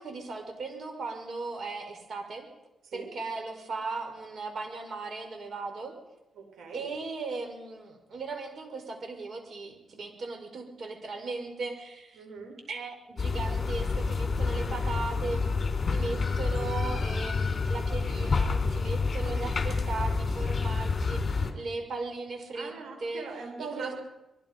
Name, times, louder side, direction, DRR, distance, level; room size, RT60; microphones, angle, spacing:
voice 1, 0.0-2.5 2.9-5.9 6.7-12.2 12.7-15.5 15.9-22.7 23.0-23.3 23.6-23.9, right 3 dB, 60° right, 5 dB, 5.1 m, -37 dB
voice 2, 6.3-6.8 12.1-12.6 22.5-23.9, right 4 dB, 85° right, 2 dB, 6.6 m, -41 dB
sound 1, 13.2-21.5, left 4 dB, 40° left, 3.7 m, -28 dB
26.0 x 22.5 x 5.3 m, 0.97 s
cardioid pair, 85°, 0 cm